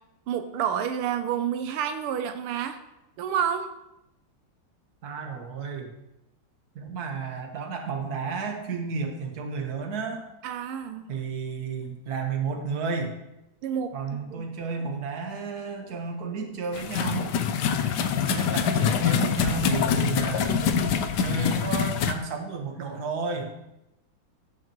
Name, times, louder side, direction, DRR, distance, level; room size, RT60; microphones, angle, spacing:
voice 1, 0.3-2.8 3.2-3.7 10.4-11.1 13.6-13.9 14.3-14.5, right 8 dB, 85° right, 8 dB, 1.5 m, -29 dB
voice 2, 5.0-5.9 6.7-10.3 11.1-13.1 13.9-17.5 18.4-20.6 21.2-23.5, right 5 dB, 50° right, 2 dB, 1.7 m, -32 dB
sound 1, 16.7-22.1, left 7 dB, 70° left, 1.1 m, -25 dB
16.5 x 5.8 x 3.0 m, 0.92 s
omnidirectional pair, 2.4 m